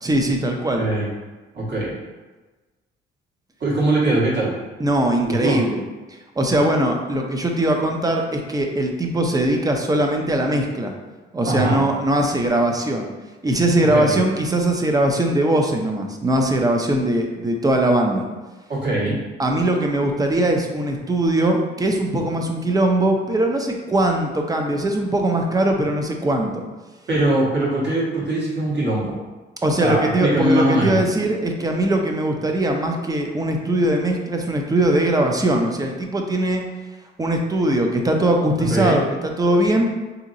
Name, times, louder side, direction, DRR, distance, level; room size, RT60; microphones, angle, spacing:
voice 1, 0.0-0.9 4.8-5.8 6.4-10.9 11.3-13.1 13.4-18.2 19.4-26.6 29.6-36.7 37.2-39.9, right 1 dB, 20° right, 2 dB, 0.5 m, -20 dB
voice 2, 0.8-1.1 1.5-1.9 3.6-4.5 5.4-5.6 11.5-11.8 13.9-14.2 18.7-19.2 27.1-29.1 29.8-31.0 38.7-39.0, right 1 dB, 60° right, -6 dB, 1.4 m, -21 dB
3.9 x 2.8 x 2.6 m, 1.2 s
cardioid pair, 90°, 20 cm